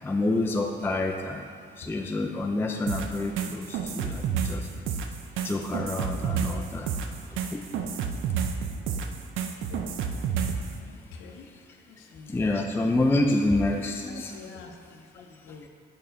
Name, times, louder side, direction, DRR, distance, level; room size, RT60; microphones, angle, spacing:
voice 1, 0.0-1.5 1.8-4.7 5.4-6.9 7.5-7.6 12.3-14.4, left 2 dB, 10° left, 2 dB, 0.4 m, -27 dB
sound 1, 2.9-10.7, right 7 dB, 85° right, 0.5 m, -30 dB
voice 2, 9.5-10.3 10.7-11.5 11.8-12.6 14.1-15.7, left 4 dB, 85° left, 3 dB, 0.7 m, -47 dB
5.5 x 4.6 x 5.1 m, 2.1 s
cardioid pair, 90°, 20 cm